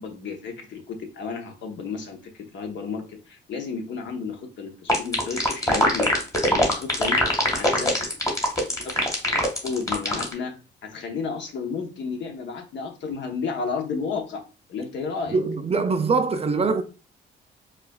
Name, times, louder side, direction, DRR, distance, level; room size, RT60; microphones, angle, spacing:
voice 1, 0.0-6.1 6.4-7.2 7.5-7.9 8.8-8.9 9.6-14.4 14.7-15.4, left 5 dB, 65° left, 0.9 m, -32 dB
sound 1, 4.9-10.3, left 1 dB, 15° left, 1.3 m, -22 dB
voice 2, 15.3-16.8, right 4 dB, 30° right, 0.4 m, -23 dB
4.7 x 2.3 x 2.2 m
cardioid pair, 90°, 20 cm